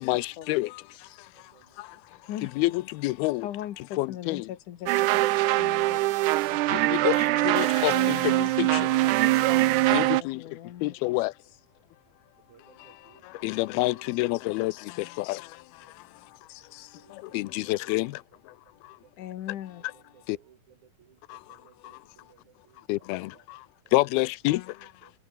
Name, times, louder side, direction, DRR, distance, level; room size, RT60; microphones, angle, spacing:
voice 1, 0.0-1.5 1.8-2.0 2.4-3.5 3.8-4.5 6.7-10.3 10.8-11.3 12.8-16.1 16.5-18.5 18.8-19.0 19.8-19.9 20.3-20.4 21.3-21.6 21.8-22.0 22.9-23.7 23.9-24.7, left 20 dB, 90° left, 2.6 m, -29 dB
voice 2, 1.3-1.8 3.4-3.5 12.4-13.7 13.9-14.0 15.8-15.9 16.5-18.2 19.0-19.1 19.8-21.2 21.5-23.5 23.8-24.0 24.8-25.1, right 8 dB, 60° right, 2.9 m, -61 dB
voice 3, 2.1-2.5 3.4-6.1 6.5-6.8 7.9-10.3 10.8-11.1 19.2-19.8, left 12 dB, 65° left, 2.6 m, -40 dB
sound 1, 4.9-10.2, right 18 dB, 85° right, 1.7 m, -23 dB
omnidirectional pair, 4.3 m